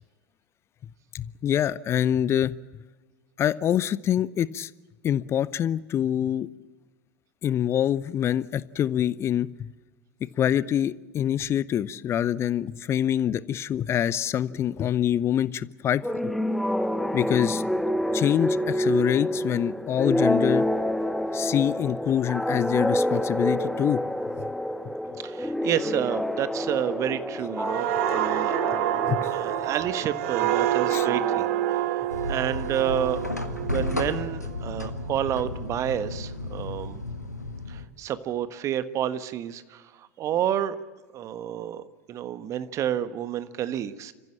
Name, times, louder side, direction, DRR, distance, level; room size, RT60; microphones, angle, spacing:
voice 1, 1.1-2.5 3.4-4.7 5.0-6.5 7.4-9.5 10.4-16.0 17.1-17.6 18.1-20.7 21.3-24.0 24.4-24.5 24.8-24.9 29.1-29.3 30.9-31.1, left 10 dB, 30° left, 20 dB, 0.8 m, -25 dB
sound 1, 16.0-32.4, left 1 dB, ahead, 1.1 m, -28 dB
voice 2, 25.2-28.6 29.3-37.0 37.7-40.8 41.1-44.1, right 10 dB, 35° right, 13 dB, 1.4 m, -30 dB
sound 2, 27.6-35.0 35.4-35.7, right 15 dB, 55° right, 0.7 m, -28 dB
sound 3, 32.1-37.8, left 2 dB, 90° left, 1.7 m, -33 dB
29.0 x 15.0 x 8.7 m, 1.2 s
figure-of-eight pair, 80°, 9 cm